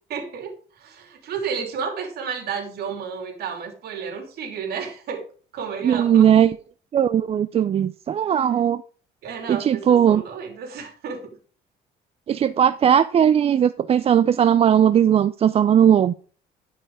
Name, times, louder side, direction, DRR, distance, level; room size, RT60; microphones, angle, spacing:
voice 1, 0.1-5.2 5.5-6.3 9.2-11.4, right 6 dB, 70° right, 4 dB, 3.2 m, -32 dB
voice 2, 5.8-6.6 6.9-8.8 9.5-10.2 12.3-16.1, right 9 dB, 35° right, 14 dB, 0.4 m, -18 dB
12.5 x 5.6 x 4.8 m, 0.42 s
cardioid pair, 110°, 17 cm